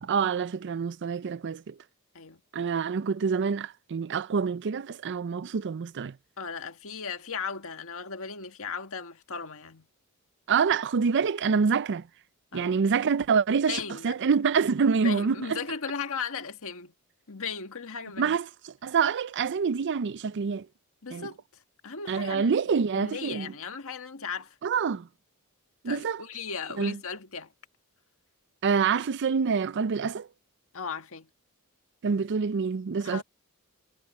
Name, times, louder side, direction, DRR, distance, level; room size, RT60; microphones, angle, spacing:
voice 1, 0.0-1.7 2.5-6.1 10.5-12.0 12.5-15.6 18.2-18.5 18.8-20.7 21.1-21.3 22.1-23.5 24.6-25.1 25.8-26.2 26.8-27.0 28.6-30.3 32.0-33.2, right 5 dB, 55° right, 0.5 m, -26 dB
voice 2, 6.4-9.8 12.5-12.8 13.7-14.1 14.9-16.9 17.3-18.4 21.0-21.4 21.8-22.5 22.9-24.5 25.8-27.5 30.7-31.3 33.0-33.2, left 5 dB, 70° left, 1.8 m, -36 dB
head